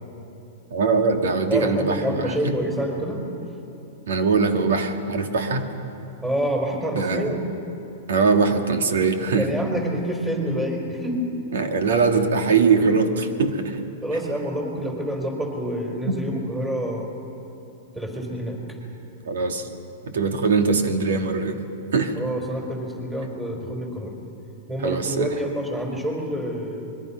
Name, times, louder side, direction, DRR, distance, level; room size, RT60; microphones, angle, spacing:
voice 1, 0.7-2.3 4.1-5.7 7.0-7.4 8.1-9.5 11.5-13.9 16.0-16.2 19.2-19.7 20.1-21.6 21.9-22.2 24.8-25.3, right 4 dB, 85° right, 5 dB, 2.1 m, -22 dB
voice 2, 1.5-3.2 6.2-7.4 9.4-11.2 14.0-17.1 17.9-18.8 22.1-24.1 24.7-26.9, equal, 10° right, 0 dB, 4.7 m, -27 dB
25.0 x 22.0 x 5.8 m, 2.8 s
hypercardioid pair, 140°, 0 cm